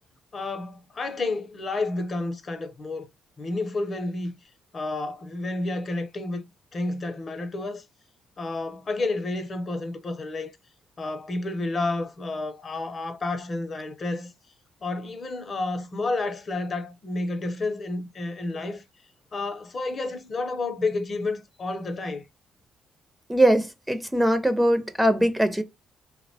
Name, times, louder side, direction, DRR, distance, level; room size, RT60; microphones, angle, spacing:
voice 1, 0.3-3.1 3.4-4.3 4.7-6.4 6.7-7.8 8.4-10.5 11.0-14.3 14.8-18.8 19.3-22.2, left 2 dB, 40° left, 0.5 m, -30 dB
voice 2, 23.3-25.6, right 1 dB, 10° right, 0.4 m, -21 dB
2.8 x 2.0 x 2.6 m
cardioid pair, 90°, 0 cm